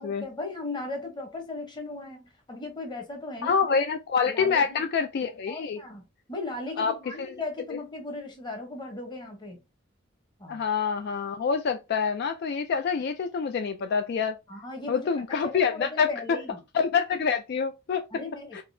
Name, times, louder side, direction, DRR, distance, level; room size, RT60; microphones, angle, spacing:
voice 1, 0.0-3.9 4.3-4.8 5.5-9.6 10.4-10.7 14.5-16.6 18.1-18.6, left 2 dB, 25° left, 0.9 m, -37 dB
voice 2, 3.4-5.8 6.8-6.9 7.2-7.4 10.5-14.4 14.9-16.1 16.7-18.0 18.5-18.6, left 6 dB, 55° left, 0.3 m, -26 dB
3.6 x 2.7 x 2.6 m
head